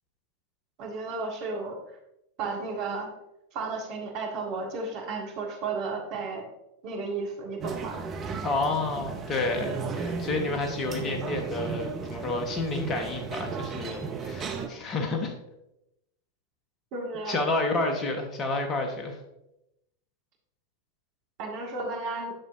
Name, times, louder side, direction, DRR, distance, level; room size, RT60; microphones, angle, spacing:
voice 1, 0.8-1.8 2.4-3.1 3.5-6.4 6.8-8.0 16.9-17.4 21.4-22.3, right 3 dB, 40° right, 1 dB, 1.8 m, -33 dB
sound 1, 7.6-14.7, right 5 dB, 25° right, 0.8 m, -35 dB
voice 2, 8.4-15.3 17.3-19.2, left 2 dB, 25° left, 3 dB, 1.3 m, -30 dB
9.9 x 6.7 x 2.7 m, 0.86 s
figure-of-eight pair, 90°, 0 cm